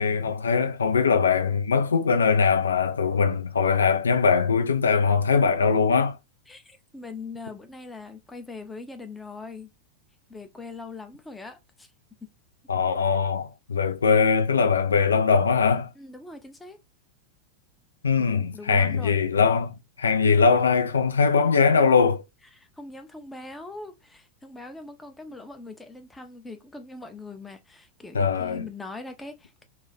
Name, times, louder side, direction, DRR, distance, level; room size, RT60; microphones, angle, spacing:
voice 1, 0.0-6.2 12.7-15.9 18.0-22.2 28.1-28.6, left 5 dB, 70° left, 0.4 m, -21 dB
voice 2, 6.5-9.7 10.3-11.9 12.2-12.3 16.0-16.8 18.2-19.2 22.5-29.7, left 3 dB, 10° left, 0.5 m, -41 dB
2.4 x 2.1 x 3.9 m
figure-of-eight pair, 90°, 0 cm